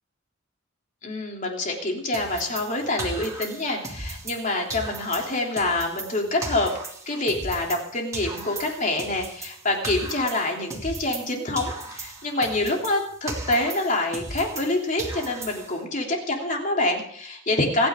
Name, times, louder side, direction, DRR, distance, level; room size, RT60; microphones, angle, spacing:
voice 1, 1.0-6.7 7.1-17.9, left 2 dB, 40° left, 0 dB, 3.3 m, -26 dB
sound 1, 2.1-4.4 4.7-7.9 8.1-11.3 11.6-14.7 15.0-15.8, right 2 dB, 15° right, 2.6 m, -36 dB
27.0 x 9.8 x 3.8 m, 0.62 s
head